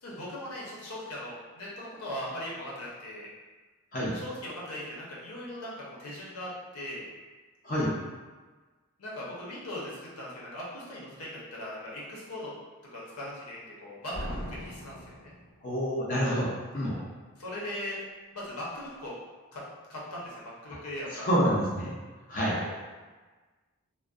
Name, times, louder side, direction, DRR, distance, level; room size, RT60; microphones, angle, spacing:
voice 1, 0.0-3.3 4.1-7.1 9.0-9.8 10.2-12.5 12.9-15.0 15.2-15.3 16.8-17.0 17.4-18.0 18.3-19.1 19.5-19.6 19.9-21.2 22.6-22.7, left 1 dB, 85° left, -6 dB, 0.7 m, -39 dB
Slam, 14.1-16.0, equal, 85° right, 0.8 m, -39 dB
voice 2, 15.6-16.9 21.1-21.9 22.3-22.6, equal, 35° left, -8 dB, 0.5 m, -27 dB
2.5 x 2.1 x 2.3 m, 1.3 s
head